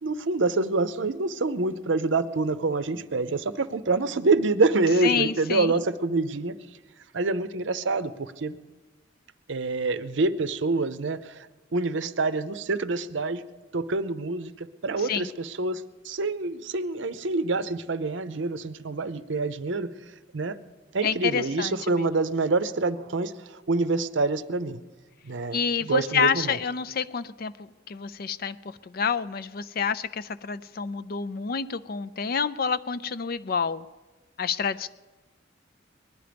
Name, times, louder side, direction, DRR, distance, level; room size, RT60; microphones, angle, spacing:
voice 1, 0.0-6.6 7.1-8.6 9.5-11.5 11.7-13.4 13.7-19.9 20.3-20.6 20.9-24.8 25.2-26.6, right 3 dB, 70° right, 13 dB, 0.7 m, -26 dB
voice 2, 5.0-5.7 15.0-15.3 21.0-22.0 25.5-33.9 34.4-34.9, left 6 dB, 50° left, 14 dB, 0.4 m, -28 dB
20.0 x 12.0 x 5.2 m, 1.2 s
head